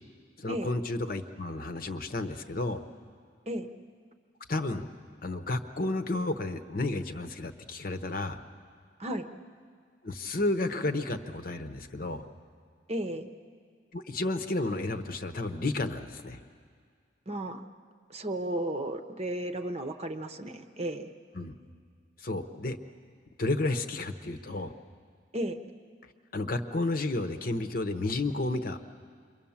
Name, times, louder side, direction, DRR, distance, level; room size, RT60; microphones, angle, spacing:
voice 1, 0.4-2.8 4.5-4.9 5.2-8.4 10.0-12.2 13.9-16.4 21.3-21.5 22.2-22.8 23.4-24.7 26.3-28.8, left 2 dB, 45° left, 8 dB, 1.0 m, -32 dB
voice 2, 12.9-13.3 17.3-17.6 18.1-21.1 25.3-25.6, right 1 dB, 30° right, 7 dB, 0.9 m, -34 dB
27.5 x 23.5 x 7.3 m, 2.1 s
head